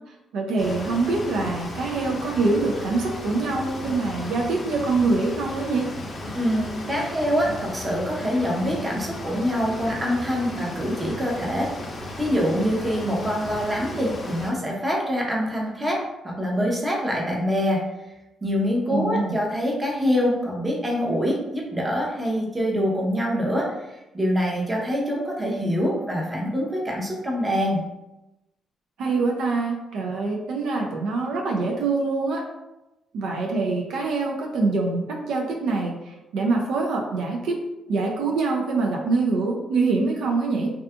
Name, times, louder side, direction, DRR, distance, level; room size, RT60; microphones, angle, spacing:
voice 1, 0.3-5.9 18.9-19.4 29.0-32.4 33.1-37.6 37.9-40.7, right 3 dB, 85° right, 0 dB, 0.4 m, -24 dB
sound 1, 0.6-14.5, left 1 dB, 40° left, 0.5 m, -35 dB
voice 2, 6.3-11.7 12.2-17.8 18.4-23.7 24.1-27.8, equal, 20° right, -2 dB, 0.7 m, -25 dB
2.7 x 2.3 x 2.3 m, 0.97 s
cardioid pair, 90°, 0 cm